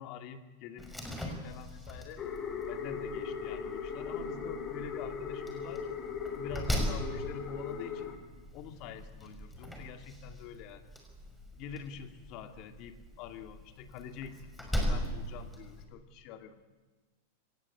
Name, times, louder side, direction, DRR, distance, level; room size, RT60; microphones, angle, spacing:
voice 1, 0.0-2.3 2.7-5.9 6.3-8.1 8.5-10.9 11.5-16.5, left 7 dB, 50° left, 7 dB, 2.5 m, -46 dB
Slam, 0.8-15.8, equal, 5° left, 5.5 m, -40 dB
sound 1, 2.2-8.2, left 6 dB, 30° left, 3.2 m, -38 dB
24.0 x 19.5 x 8.6 m, 1.3 s
hypercardioid pair, 125°, 0 cm